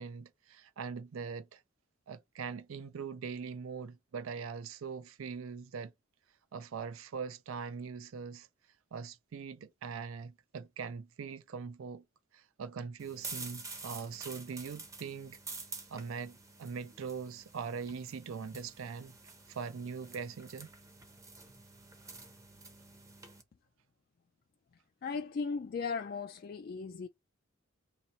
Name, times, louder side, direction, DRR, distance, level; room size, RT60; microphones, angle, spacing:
voice 1, 0.0-1.6 2.1-5.9 6.5-8.5 8.9-12.0 12.3-15.4 15.9-19.2 19.5-20.7, right 5 dB, 80° right, 0.4 m, -42 dB
sound 1, 13.0-23.4, right 3 dB, 15° right, 0.6 m, -48 dB
voice 2, 25.0-27.1, left 5 dB, 45° left, 0.3 m, -37 dB
2.9 x 2.8 x 4.2 m
head